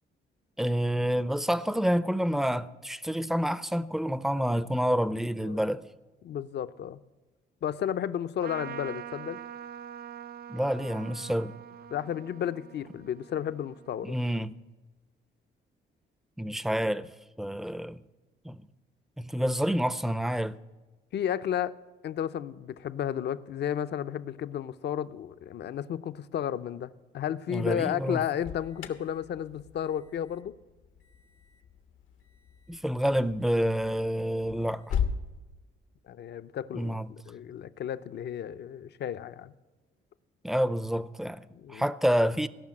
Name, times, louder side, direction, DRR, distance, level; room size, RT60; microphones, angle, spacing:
voice 1, 0.6-5.9 10.5-11.5 14.0-14.6 16.4-17.1 17.4-18.0 18.4-18.6 19.2-20.6 27.5-28.2 32.7-34.9 36.7-37.1 40.4-42.5, equal, ahead, 0.5 m, -28 dB
voice 2, 6.2-7.0 7.6-9.4 11.9-14.2 21.1-21.8 22.0-30.6 36.1-37.0 37.3-39.5 41.5-41.8, left 9 dB, 60° left, 0.6 m, -33 dB
Trumpet, 8.4-14.2, right 9 dB, 50° right, 0.4 m, -44 dB
Alarm, 28.2-35.2, left 7 dB, 85° left, 1.3 m, -38 dB
17.5 x 5.8 x 8.6 m
cardioid pair, 90°, 20 cm